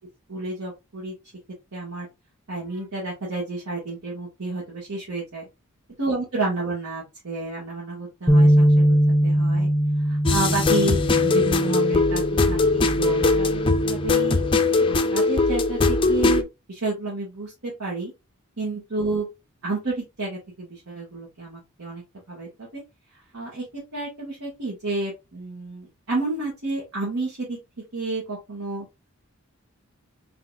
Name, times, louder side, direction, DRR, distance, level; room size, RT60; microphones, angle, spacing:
voice 1, 0.3-1.1 1.7-2.1 2.5-5.4 6.0-9.0 9.2-9.7 10.0-14.4 14.9-18.1 18.6-19.3 19.6-22.0 22.3-22.8 23.3-23.6 23.9-27.6 27.9-28.9, right 2 dB, 80° right, -6 dB, 1.9 m, -30 dB
sound 1, 8.3-14.5, equal, 5° left, 0.8 m, -22 dB
sound 2, 10.3-16.4, left 3 dB, 25° left, 0.4 m, -21 dB
4.1 x 3.9 x 2.5 m, 0.24 s
head